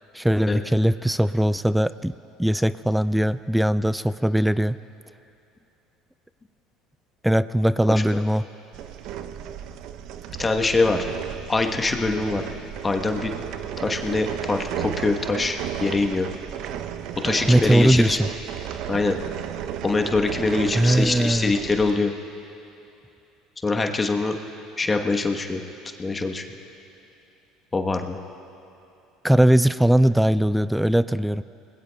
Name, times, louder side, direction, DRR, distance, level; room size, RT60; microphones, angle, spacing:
voice 1, 0.1-4.8 7.2-8.5 17.5-18.3 20.7-21.5 29.2-31.4, right 1 dB, 5° right, 15 dB, 0.3 m, -20 dB
sound 1, 8.7-21.9, right 9 dB, 65° right, 0.6 m, -33 dB
voice 2, 10.4-11.1 11.5-12.5 12.8-13.3 13.8-16.3 17.2-18.2 18.9-19.2 19.8-22.1 23.6-24.3 24.8-25.6 26.0-26.4 27.7-28.2, left 3 dB, 25° left, 4 dB, 1.1 m, -23 dB
25.0 x 20.0 x 2.3 m, 2.8 s
hypercardioid pair, 75°, 0 cm